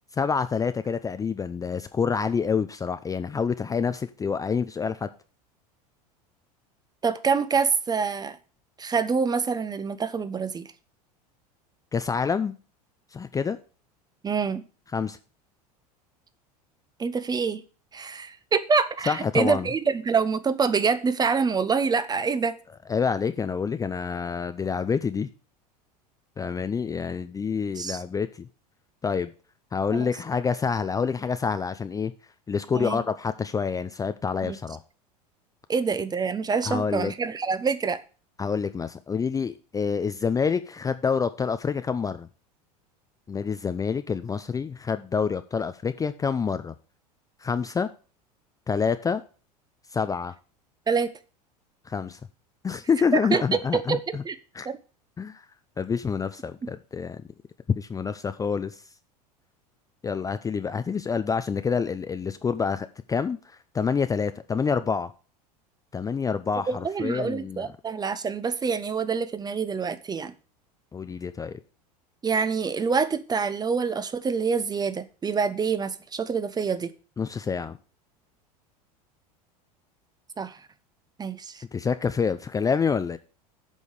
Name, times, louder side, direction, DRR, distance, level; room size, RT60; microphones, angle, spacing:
voice 1, 0.2-5.1 11.9-12.5 13.1-13.6 14.9-15.2 19.1-19.7 22.9-25.3 26.4-28.5 29.0-29.3 29.7-32.1 32.5-34.8 36.7-37.1 38.4-42.3 43.3-46.7 47.4-47.9 48.7-49.2 49.9-50.3 51.9-52.2 52.6-54.2 54.5-54.7 55.2-55.4 55.8-57.2 57.8-58.8 60.0-63.4 63.7-65.1 65.9-67.7 70.9-71.6 77.2-77.8 81.7-83.2, left 6 dB, 15° left, 11 dB, 0.5 m, -27 dB
voice 2, 7.0-8.4 8.8-10.7 14.2-14.6 17.0-17.6 17.9-22.5 27.8-28.0 29.9-30.1 32.7-33.0 34.4-34.6 35.7-38.0 50.9-51.1 53.1-53.4 53.7-54.4 54.6-54.8 66.7-70.3 72.2-76.9 80.4-80.6 81.2-81.6, right 5 dB, 20° right, 13 dB, 0.8 m, -26 dB
8.4 x 5.4 x 6.3 m, 0.36 s
hypercardioid pair, 85°, 20 cm